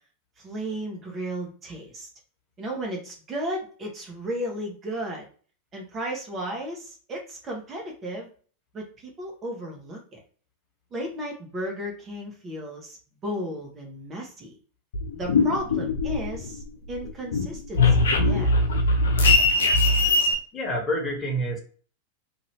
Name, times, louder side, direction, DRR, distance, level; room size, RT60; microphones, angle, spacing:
voice 1, 0.4-2.1 2.6-5.3 5.7-8.3 8.7-8.9 9.2-10.2 10.9-13.0 13.2-14.5 15.1-16.6 16.9-18.5, right 1 dB, 30° right, 1 dB, 1.0 m, -34 dB
sound 1, 14.9-16.6 17.0-20.3, left 2 dB, 75° left, 0.6 m, -21 dB
voice 2, 20.5-21.6, equal, 25° left, 1 dB, 1.4 m, -27 dB
2.7 x 2.6 x 3.2 m, 0.42 s
hypercardioid pair, 95°, 0 cm